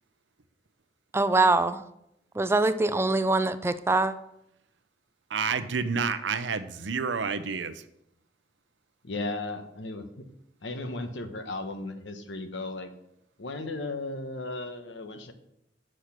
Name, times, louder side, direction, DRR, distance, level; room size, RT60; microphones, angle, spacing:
voice 1, 1.1-1.8 2.4-4.1, right 2 dB, 15° right, 12 dB, 0.4 m, -23 dB
voice 2, 5.3-7.7, right 5 dB, 85° right, 11 dB, 0.7 m, -29 dB
voice 3, 9.0-10.1 10.6-12.9 13.4-15.3, left 2 dB, 85° left, 7 dB, 1.0 m, -35 dB
6.7 x 6.3 x 5.8 m, 0.79 s
head